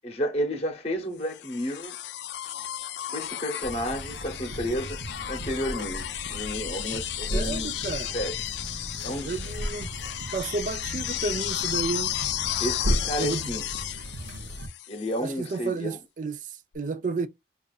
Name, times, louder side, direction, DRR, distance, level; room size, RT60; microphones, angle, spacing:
voice 1, 0.0-2.0 3.1-5.0 5.3-7.7 8.1-8.3 9.0-9.5 12.6-13.7 14.9-16.0, equal, 35° left, 0.9 m, -31 dB
sound 1, 1.3-15.3 16.7-16.8, left 13 dB, 70° left, 0.4 m, -33 dB
sound 2, 3.6-14.7, equal, 90° right, 0.8 m, -35 dB
voice 2, 7.3-8.2 9.2-9.9 10.3-12.2 13.2-13.4 15.2-17.3, right 4 dB, 45° right, 0.4 m, -31 dB
5.1 x 2.4 x 2.3 m
head